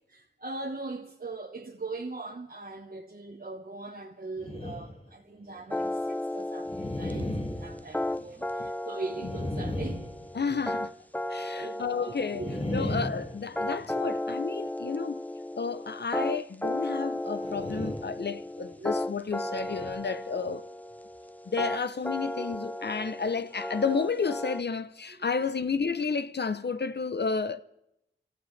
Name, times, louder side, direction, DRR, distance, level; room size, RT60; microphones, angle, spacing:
voice 1, 0.1-10.1 10.5-10.6 11.5-11.8 12.4-12.9 17.5-17.6 18.8-18.9 22.4-22.5, right 3 dB, 45° right, 1.2 m, -40 dB
sound 1, 4.4-5.1 5.6-5.7 6.7-8.5 9.1-10.8 12.3-14.1 17.4-18.2 18.6-18.8 19.6-19.9, left 1 dB, 30° left, 2.0 m, -36 dB
sound 2, 5.7-24.6, left 1 dB, 10° left, 0.5 m, -35 dB
voice 2, 10.3-10.9 11.3-12.5 12.7-15.2 15.6-20.7 21.5-27.6, left 5 dB, 55° left, 0.7 m, -31 dB
29.5 x 14.5 x 3.3 m
wide cardioid pair, 60°, 20 cm